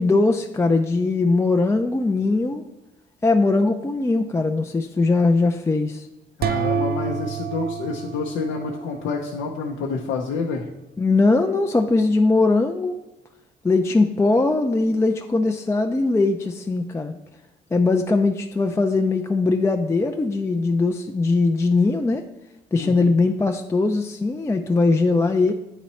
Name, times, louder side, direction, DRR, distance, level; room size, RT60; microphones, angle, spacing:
voice 1, 0.0-2.6 3.2-6.1 11.0-13.0 13.6-17.1 17.7-22.3 22.7-25.5, left 3 dB, 15° left, 4 dB, 0.3 m, -20 dB
voice 2, 6.4-10.6 22.8-23.1, left 4 dB, 85° left, 0 dB, 0.6 m, -28 dB
sound 1, 6.4-9.2, right 6 dB, 50° right, 0.4 m, -28 dB
8.9 x 3.0 x 4.2 m, 0.98 s
cardioid pair, 90°, 20 cm